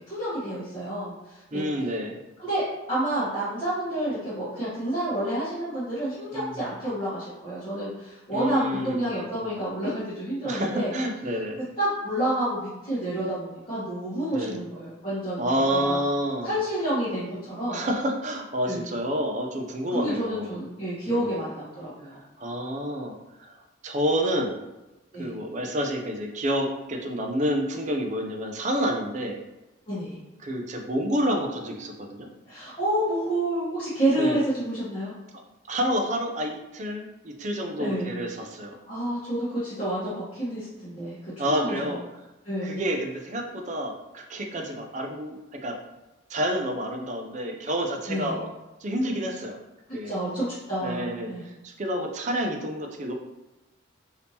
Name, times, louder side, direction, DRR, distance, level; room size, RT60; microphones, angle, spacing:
voice 1, 0.1-1.6 2.4-2.6 2.9-10.9 11.6-16.0 16.4-17.8 18.6-18.8 19.9-22.2 25.1-25.3 29.9-30.2 32.4-35.1 37.8-38.1 38.9-41.9 42.4-42.8 44.5-44.7 48.1-48.4 50.0-51.0 51.3-51.4, right 1 dB, 30° left, -12 dB, 1.1 m, -29 dB
voice 2, 1.5-2.2 6.3-6.7 8.3-9.1 9.4-9.5 10.4-11.6 14.3-14.6 15.4-16.6 17.7-20.6 21.1-21.3 22.4-23.6 23.8-24.6 25.2-29.4 30.4-32.3 34.1-34.4 35.7-38.7 41.4-42.0 42.6-45.4 45.6-45.8 46.3-48.5 48.8-49.6 49.9-50.2 50.8-53.1, equal, 35° right, 3 dB, 0.4 m, -29 dB
3.4 x 2.8 x 2.8 m, 1.0 s
head